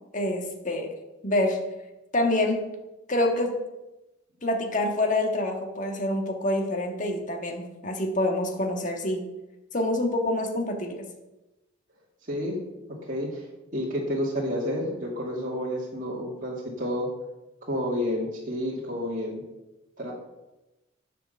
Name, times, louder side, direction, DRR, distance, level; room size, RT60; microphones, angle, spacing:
voice 1, 0.1-0.9 1.2-1.7 2.1-2.6 3.1-3.6 4.4-9.2 9.7-11.1, left 1 dB, 40° left, 3 dB, 1.6 m, -26 dB
voice 2, 12.3-12.6 12.9-13.5 13.7-17.1 17.7-19.4 20.0-20.1, equal, 40° right, -4 dB, 2.4 m, -30 dB
9.9 x 7.6 x 6.9 m, 1.0 s
head